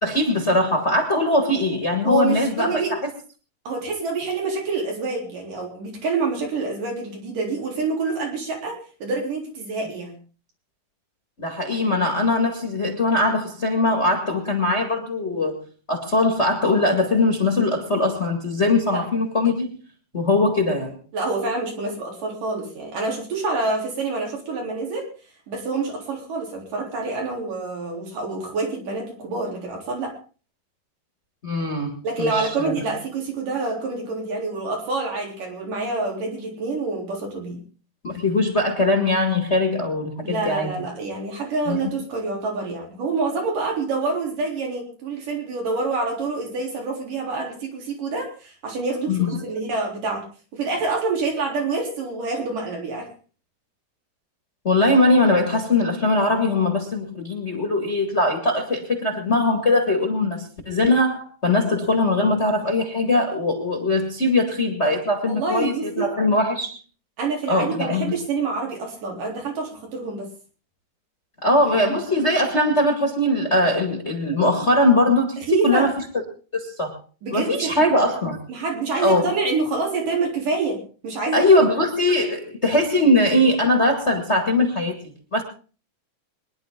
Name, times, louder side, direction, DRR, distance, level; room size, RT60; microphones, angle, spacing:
voice 1, 0.0-3.0 11.4-15.6 15.9-19.7 20.1-21.0 31.4-31.9 32.2-32.9 38.0-40.9 41.7-41.8 49.1-49.4 54.6-66.7 67.5-68.1 71.4-75.9 76.5-76.9 77.3-78.4 79.0-79.2 81.3-85.4, left 2 dB, 25° left, 4 dB, 1.9 m, -21 dB
voice 2, 2.0-2.9 3.7-8.8 9.0-10.1 18.9-19.0 21.1-25.1 25.5-30.2 32.0-37.6 40.2-50.2 50.5-53.1 65.2-66.1 67.2-70.3 75.4-75.9 77.2-77.9 78.5-80.8 81.0-81.7, right 3 dB, 75° right, -1 dB, 5.3 m, -27 dB
23.5 x 11.0 x 3.8 m, 0.37 s
omnidirectional pair, 3.8 m